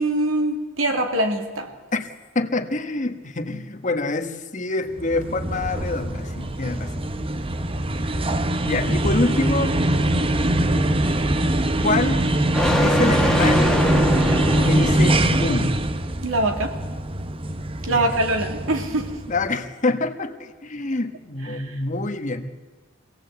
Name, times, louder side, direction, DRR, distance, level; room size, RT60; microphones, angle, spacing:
voice 1, 0.0-1.7 16.2-16.8 17.8-19.1 21.5-21.8, right 1 dB, 80° right, 4 dB, 2.7 m, -24 dB
voice 2, 1.9-6.9 8.6-9.8 11.8-12.3 12.8-13.7 14.7-15.7 17.9-18.1 19.3-22.5, left 2 dB, 35° left, 6 dB, 1.5 m, -26 dB
sound 1, 5.0-19.5, right 1 dB, 25° right, 0.8 m, -23 dB
sound 2, 8.7-15.7, left 1 dB, 5° left, 1.7 m, -25 dB
25.0 x 17.5 x 8.1 m, 1.3 s
head